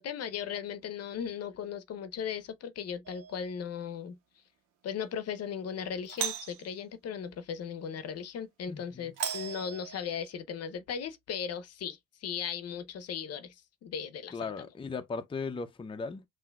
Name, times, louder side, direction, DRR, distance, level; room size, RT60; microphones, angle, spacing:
voice 1, 0.0-4.2 4.8-13.6 13.8-14.5, left 7 dB, 55° left, 0.7 m, -37 dB
Doorbell, 3.1-3.5 6.1-6.7 9.2-10.3, right 8 dB, 90° right, 1.2 m, -37 dB
voice 2, 8.7-9.1 14.3-16.2, left 4 dB, 15° left, 0.5 m, -37 dB
5.6 x 2.7 x 2.3 m
cardioid pair, 90°, 31 cm